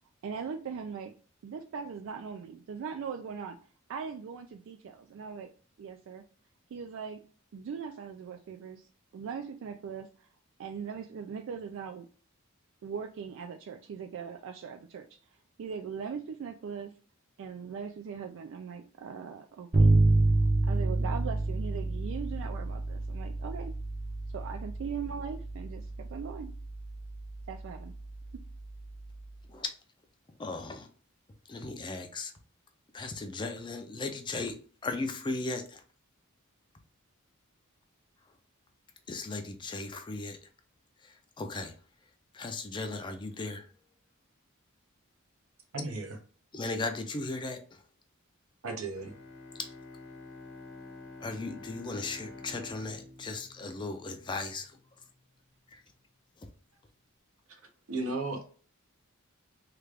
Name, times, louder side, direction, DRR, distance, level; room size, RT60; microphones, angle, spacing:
voice 1, 0.2-1.2 1.4-3.6 3.9-6.2 6.7-7.2 7.5-10.3 10.6-12.1 12.8-15.2 15.6-16.9 17.4-20.0 20.3-20.4 20.6-23.7 24.3-26.5 27.5-27.9, right 6 dB, 60° right, 0.3 m, -40 dB
Bass guitar, 19.7-29.4, right 2 dB, 35° right, 0.7 m, -29 dB
voice 2, 30.4-30.9 31.5-32.3 32.9-35.8 39.1-40.4 41.0-41.7 42.3-43.7 46.5-47.8 49.6-49.7 51.2-54.8 55.7-55.8 56.4-56.5, left 3 dB, 20° left, 0.4 m, -37 dB
voice 3, 45.7-46.2 48.6-49.2 57.5-57.6 57.9-58.4, right 2 dB, 80° right, 0.8 m, -35 dB
Bowed string instrument, 48.9-54.5, left 3 dB, 60° left, 0.9 m, -48 dB
3.2 x 2.4 x 3.3 m
head